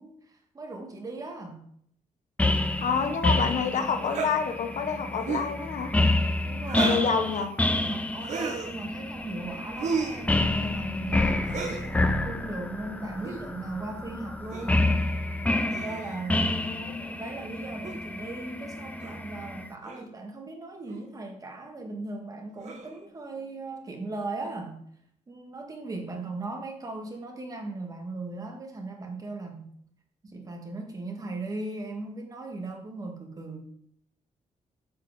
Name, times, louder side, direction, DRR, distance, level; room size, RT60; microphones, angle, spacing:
voice 1, 0.0-1.6 6.5-7.0 7.8-15.0 15.5-16.5 16.8-24.8 25.3-29.7 30.2-33.6, right 2 dB, 30° right, 2 dB, 1.8 m, -38 dB
sound 1, 2.4-19.7, left 2 dB, 10° left, 0.6 m, -29 dB
voice 2, 2.8-5.9 6.8-7.5 16.5-17.0, left 6 dB, 70° left, 6 dB, 1.3 m, -28 dB
sound 2, 4.1-4.3 5.2-5.5 6.7-7.1 8.2-8.7 9.8-10.2 11.5-11.9 13.2-13.4 14.5-14.7 15.7-16.2 17.8-18.0 19.0-19.1 19.8-20.1 20.9-21.0 22.6-23.0, right 5 dB, 65° right, 1.8 m, -33 dB
8.5 x 4.9 x 7.4 m, 0.68 s
wide cardioid pair, 160°, 13 cm